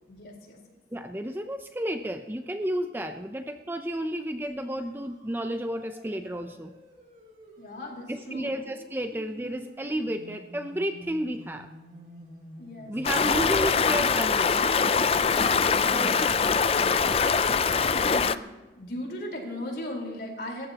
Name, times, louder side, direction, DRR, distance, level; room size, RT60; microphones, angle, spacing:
voice 1, 0.1-0.6 7.6-8.5 12.6-13.3 15.3-16.1 17.9-18.3 18.7-20.7, left 1 dB, 55° left, 0 dB, 4.5 m, -38 dB
voice 2, 0.9-6.8 8.1-11.7 12.9-14.6 15.9-16.2, right 1 dB, 10° right, 7 dB, 0.6 m, -32 dB
sound 1, 4.6-15.8, right 1 dB, 50° right, 2.8 m, -49 dB
Stream, 13.0-18.4, left 5 dB, 35° left, 0.4 m, -23 dB
27.5 x 14.5 x 3.0 m, 1.2 s
head